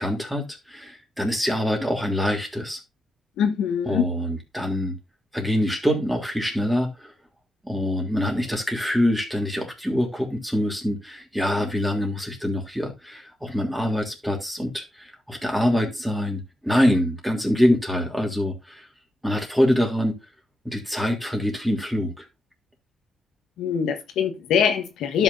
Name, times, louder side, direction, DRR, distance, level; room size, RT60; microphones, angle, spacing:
voice 1, 0.0-2.8 3.8-5.0 5.3-7.1 7.6-18.9 19.2-20.2 20.6-22.2, left 1 dB, 5° right, 3.1 m, -25 dB
voice 2, 3.4-4.1 23.6-25.2, left 7 dB, 80° left, 1.3 m, -23 dB
12.5 x 6.0 x 2.7 m
cardioid pair, 90°, 0 cm